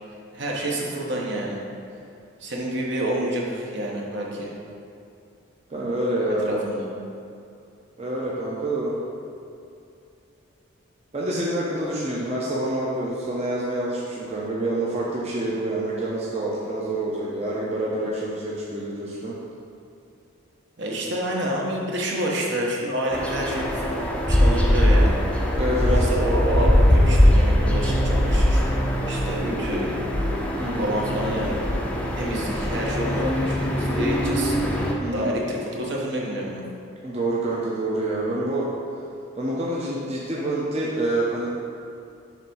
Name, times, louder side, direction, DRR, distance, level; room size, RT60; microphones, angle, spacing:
voice 1, 0.3-1.6 2.4-4.5 6.3-6.9 20.8-24.0 24.3-25.2 25.8-28.6 29.1-29.9 30.8-34.6 35.1-36.6, right 1 dB, 60° right, -2 dB, 1.1 m, -28 dB
voice 2, 5.7-6.6 8.0-8.9 11.1-19.4 25.6-25.9 30.6-30.9 35.0-35.3 37.0-38.7 39.4-41.5, right 1 dB, 30° right, -5 dB, 0.7 m, -27 dB
sound 1, 23.1-34.9, equal, 5° left, 0.5 m, -21 dB
7.3 x 3.5 x 5.4 m, 2.6 s
head